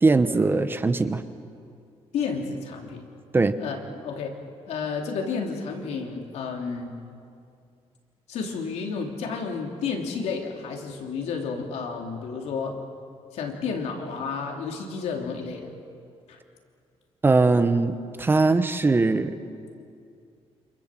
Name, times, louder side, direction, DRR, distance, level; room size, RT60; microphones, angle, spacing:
voice 1, 0.0-1.2 3.3-3.6 17.2-19.4, right 3 dB, 20° right, 10 dB, 1.0 m, -21 dB
voice 2, 2.1-3.0 3.6-3.8 4.0-4.4 4.7-6.9 8.3-12.8 13.3-15.7 16.3-16.4, left 5 dB, 85° left, 2 dB, 3.2 m, -31 dB
28.5 x 27.0 x 7.6 m, 2.4 s
cardioid pair, 150°, 11 cm